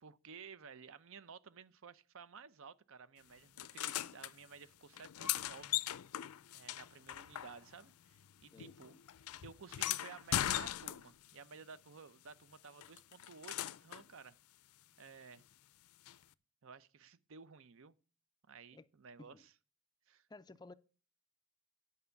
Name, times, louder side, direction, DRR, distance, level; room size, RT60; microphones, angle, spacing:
voice 1, 0.0-5.8 6.5-8.9 9.4-14.3 15.0-15.4 16.6-17.9 18.5-19.5 20.1-20.3, right 5 dB, 65° right, 0.6 m, -55 dB
sound 1, 3.6-4.3 4.9-7.9 8.2-11.3 12.8-14.1 16.1-16.2, left 13 dB, 85° left, 0.4 m, -39 dB
voice 2, 8.5-9.0 18.7-18.9 19.2-19.5 20.3-20.7, left 2 dB, 20° left, 0.4 m, -56 dB
9.4 x 5.5 x 6.8 m
head